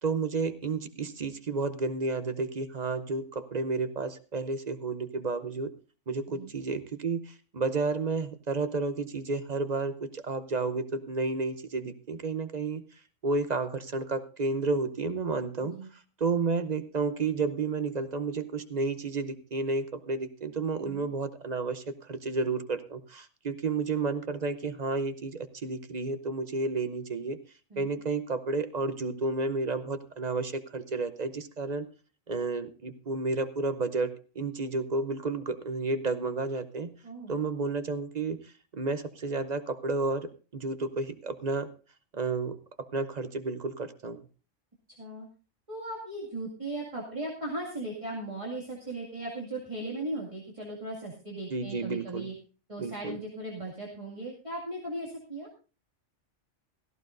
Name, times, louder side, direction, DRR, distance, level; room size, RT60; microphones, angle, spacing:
voice 1, 0.0-5.7 6.1-12.8 13.2-15.7 16.2-27.4 27.8-31.9 32.3-36.9 37.3-38.4 38.7-41.7 42.1-44.2 51.5-52.3 52.8-53.2, right 3 dB, 40° right, 11 dB, 0.7 m, -31 dB
voice 2, 37.0-37.3 45.0-45.3 45.7-52.3 52.7-55.5, right 1 dB, 25° right, -3 dB, 2.2 m, -37 dB
16.5 x 14.5 x 2.6 m, 0.35 s
omnidirectional pair, 1.3 m